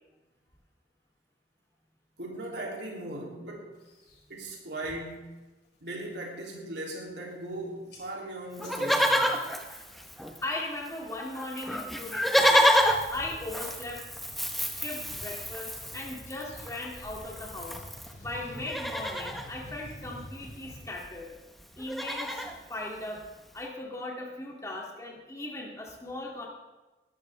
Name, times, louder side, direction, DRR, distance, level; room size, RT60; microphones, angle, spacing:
voice 1, 2.2-3.8 4.3-5.4 5.8-9.4, right 1 dB, 85° right, -2 dB, 3.1 m, -38 dB
sound 1, 3.8-4.6 5.0-5.4 5.7-6.1 6.6-6.7 6.9-7.6 7.9-10.5 10.7-11.2 11.8-20.8, equal, 70° left, 5.1 m, -49 dB
Livestock farm animals working animals, 8.6-10.6 10.9-11.0 11.2-18.1 18.6-19.5 20.7-20.8 21.0-21.2 21.6-22.6 23.2-23.3, equal, ahead, 1.0 m, -28 dB
voice 2, 10.4-12.7 13.1-14.0 14.8-17.8 18.2-21.3 21.8-22.4 22.7-23.2 23.5-26.5, left 2 dB, 20° left, -2 dB, 2.6 m, -38 dB
20.0 x 12.5 x 3.5 m, 1.1 s
head